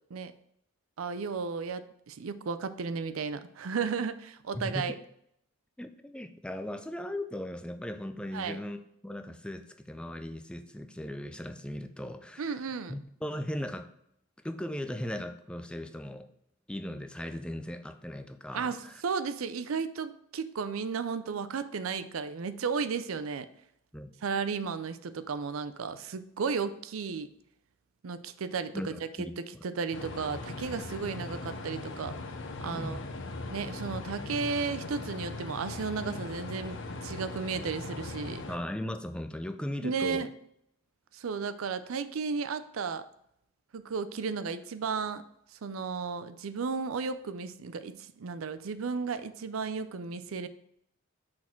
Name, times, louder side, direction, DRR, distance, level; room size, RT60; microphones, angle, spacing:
voice 1, 1.0-5.0 8.3-8.6 12.4-12.9 18.5-23.5 24.2-27.3 28.0-28.9 29.6-32.1 32.6-33.0 33.5-38.4 39.8-40.3 41.1-43.0 43.7-45.2 45.6-50.5, right 5 dB, 85° right, 12 dB, 0.5 m, -34 dB
voice 2, 4.5-4.9 5.8-12.5 12.9-13.9 14.4-16.3 16.7-19.0 23.9-24.1 28.7-29.6 32.7-33.0 38.5-40.3, left 1 dB, 5° left, 8 dB, 0.4 m, -38 dB
sound 1, 29.9-38.6, left 3 dB, 65° left, 0.8 m, -39 dB
6.1 x 4.2 x 4.5 m, 0.72 s
head